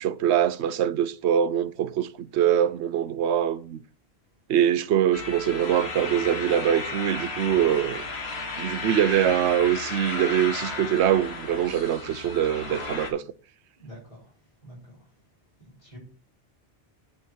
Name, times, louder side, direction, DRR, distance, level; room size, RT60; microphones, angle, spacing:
voice 1, 0.0-3.8 4.5-8.0 8.6-13.2, right 10 dB, 80° right, 0.9 m, -23 dB
sound 1, 5.1-13.1, left 3 dB, 70° left, 1.7 m, -34 dB
voice 2, 13.8-14.2 14.6-15.0 15.8-16.0, equal, 30° left, 4.6 m, -45 dB
9.5 x 3.9 x 6.4 m
omnidirectional pair, 1.1 m